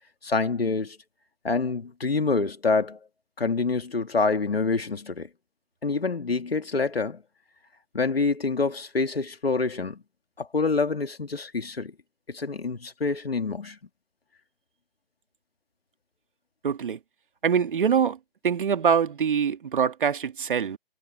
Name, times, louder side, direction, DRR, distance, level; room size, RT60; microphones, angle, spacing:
voice 1, 0.2-1.0 1.4-3.0 3.4-5.3 5.8-7.2 7.9-10.0 10.4-11.9 12.3-13.8, left 4 dB, 80° left, 2.5 m, -26 dB
voice 2, 16.6-17.0 17.4-18.2 18.4-20.8, right 7 dB, 60° right, 2.5 m, -24 dB
figure-of-eight pair, 140°, 29 cm